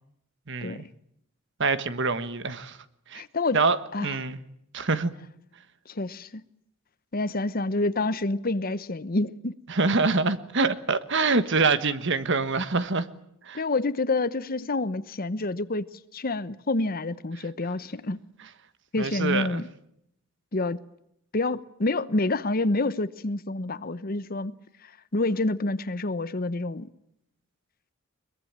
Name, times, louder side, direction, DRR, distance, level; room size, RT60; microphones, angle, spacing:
voice 1, 0.5-0.8 1.6-2.8 3.1-3.2 3.5-4.4 4.7-5.1 9.7-13.1 13.4-13.6 19.0-19.6, right 4 dB, 55° right, 1.4 m, -25 dB
voice 2, 3.1-3.6 3.9-4.2 5.9-6.4 7.1-9.5 13.5-15.9 16.1-18.2 18.9-19.6 20.5-20.8 21.3-24.5 24.8-26.9, left 2 dB, 45° left, 0.9 m, -28 dB
22.5 x 22.0 x 8.8 m
head